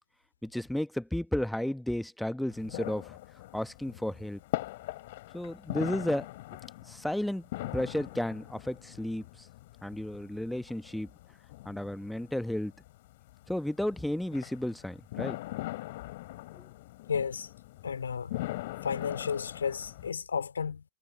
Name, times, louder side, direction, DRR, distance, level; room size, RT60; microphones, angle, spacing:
voice 1, 0.4-3.2 3.5-4.4 5.3-6.3 6.9-9.5 9.8-11.1 11.6-12.7 13.5-15.4 16.6-16.7, left 1 dB, ahead, 1.1 m, -33 dB
sound 1, 2.5-20.1, left 18 dB, 55° left, 7.6 m, -41 dB
voice 2, 17.1-17.5 17.8-18.4 18.8-20.8, left 6 dB, 70° left, 3.2 m, -33 dB
figure-of-eight pair, 90°, 0 cm